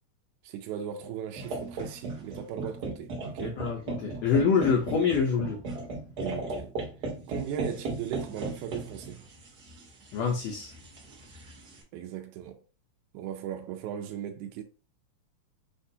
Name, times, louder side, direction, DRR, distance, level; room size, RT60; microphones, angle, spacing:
voice 1, 0.4-3.7 6.2-6.7 7.3-9.2 11.9-12.6 13.1-14.6, right 9 dB, 85° right, 2.0 m, -37 dB
sound 1, 1.4-11.8, right 2 dB, 65° right, 1.0 m, -37 dB
voice 2, 3.4-5.6 10.1-10.7, left 6 dB, 70° left, 1.8 m, -26 dB
6.5 x 2.4 x 2.7 m
omnidirectional pair, 3.4 m